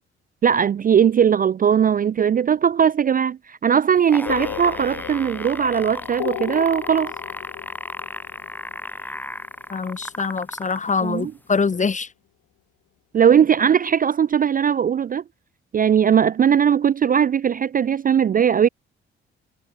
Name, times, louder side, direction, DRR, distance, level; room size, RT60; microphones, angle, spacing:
voice 1, 0.4-7.1 11.0-11.3 13.1-15.2 15.7-18.7, right 8 dB, 30° right, 0.4 m, -19 dB
sound 1, 4.0-10.9 11.7-11.8, left 1 dB, 5° left, 1.7 m, -34 dB
sound 2, 4.3-10.0, left 16 dB, 70° left, 2.0 m, -35 dB
voice 2, 9.7-12.1, left 5 dB, 25° left, 0.9 m, -24 dB
hypercardioid pair, 45°, 30 cm